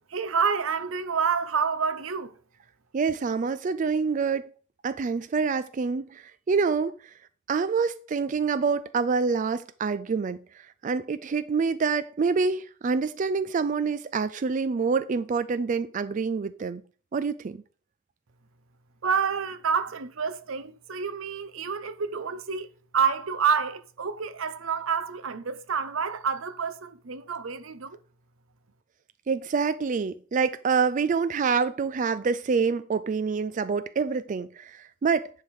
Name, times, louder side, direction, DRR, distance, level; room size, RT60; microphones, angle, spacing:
voice 1, 0.1-2.3 19.0-22.7 22.9-28.0, right 6 dB, 85° right, 0.7 m, -28 dB
voice 2, 2.9-4.5 4.8-6.9 7.5-16.8 17.1-17.6 29.3-35.3, right 5 dB, 40° right, 0.3 m, -26 dB
10.5 x 3.5 x 6.2 m
head